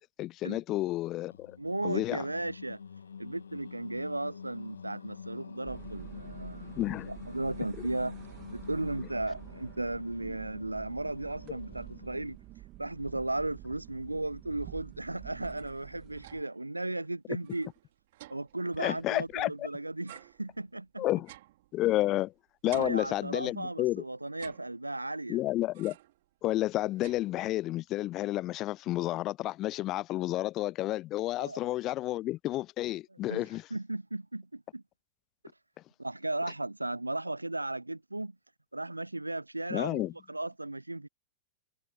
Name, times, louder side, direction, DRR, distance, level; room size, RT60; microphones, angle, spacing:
voice 1, 0.2-1.6 1.8-2.2 6.8-7.1 18.8-19.7 21.0-21.3 21.7-22.3 22.6-24.0 25.3-26.0 26.4-33.6 39.7-40.1, left 16 dB, 35° left, 0.4 m, -31 dB
Singing, 1.3-12.4, left 6 dB, 70° left, 1.8 m, -47 dB
voice 2, 1.6-2.8 3.2-6.7 7.1-8.2 8.5-12.4 12.8-17.7 18.3-21.0 22.7-25.4 31.4-31.6 33.3-34.8 36.0-38.4 38.7-41.1, right 2 dB, 85° right, 0.3 m, -35 dB
sound 1, 5.6-16.4, right 17 dB, 35° right, 2.4 m, -48 dB
sound 2, 15.2-16.7 17.0-17.1 17.4-19.6 20.1-22.3 22.7-23.8 24.3-25.2 25.7-26.3 26.6-27.8, right 16 dB, 50° right, 2.8 m, -53 dB
figure-of-eight pair, 100°, 0 cm